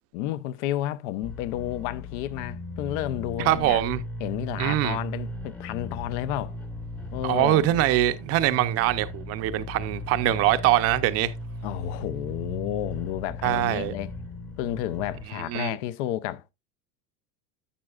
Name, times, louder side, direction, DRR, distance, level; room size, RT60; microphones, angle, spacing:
voice 1, 0.1-3.8 4.2-6.5 7.1-7.7 11.6-14.1 14.6-16.5, left 13 dB, 65° left, 0.7 m, -31 dB
sound 1, 1.2-15.2, left 1 dB, 5° left, 0.8 m, -37 dB
voice 2, 3.4-4.0 4.6-5.0 7.2-11.3 13.4-13.9 15.5-15.8, right 14 dB, 40° right, 0.6 m, -23 dB
11.0 x 7.4 x 2.4 m
cardioid pair, 165°, 37 cm